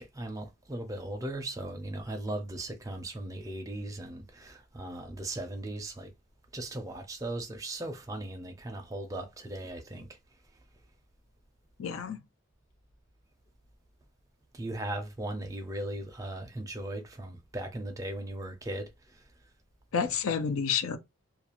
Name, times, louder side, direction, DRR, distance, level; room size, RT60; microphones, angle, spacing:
voice 1, 0.0-6.1 6.5-10.1 14.5-18.9, right 1 dB, 15° right, 0.4 m, -38 dB
voice 2, 11.8-12.2 19.9-21.0, left 6 dB, 80° left, 0.4 m, -29 dB
2.4 x 2.3 x 2.9 m
head